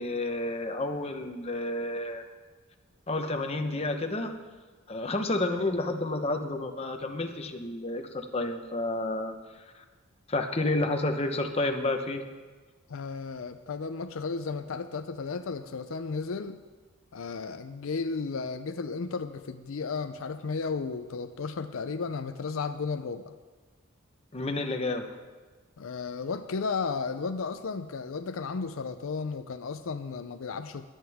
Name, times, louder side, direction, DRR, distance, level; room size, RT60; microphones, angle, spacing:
voice 1, 0.0-2.2 3.1-4.3 4.9-9.8 10.3-12.2 24.3-25.1, left 2 dB, 30° left, 5 dB, 0.9 m, -30 dB
voice 2, 12.9-16.6 17.1-23.4 25.8-30.9, left 4 dB, 75° left, 10 dB, 0.5 m, -34 dB
22.5 x 8.9 x 3.5 m, 1.3 s
head